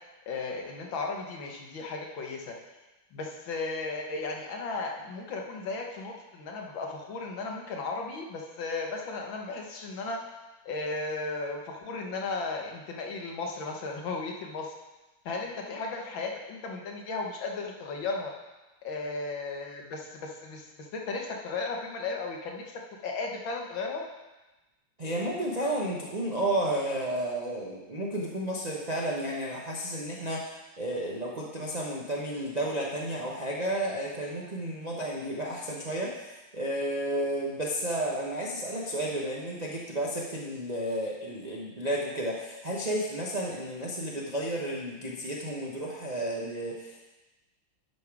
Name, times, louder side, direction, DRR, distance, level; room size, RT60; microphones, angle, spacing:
voice 1, 0.3-2.5 3.1-10.2 10.6-14.7 15.2-18.3 18.8-24.0, left 3 dB, 70° left, 1 dB, 1.8 m, -35 dB
voice 2, 25.0-47.0, right 1 dB, 40° right, -4 dB, 0.6 m, -32 dB
11.0 x 5.5 x 4.7 m, 1.1 s
omnidirectional pair, 2.3 m